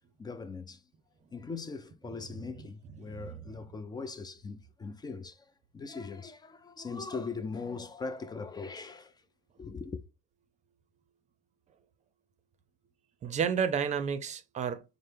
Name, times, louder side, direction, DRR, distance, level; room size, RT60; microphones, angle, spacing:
voice 1, 0.2-0.8 1.3-5.5 5.7-9.1 9.6-10.0, left 4 dB, 25° left, 0.4 m, -40 dB
voice 2, 3.0-3.4 13.2-14.8, right 7 dB, 45° right, 0.5 m, -31 dB
5.3 x 2.0 x 3.3 m
cardioid pair, 110°, 17 cm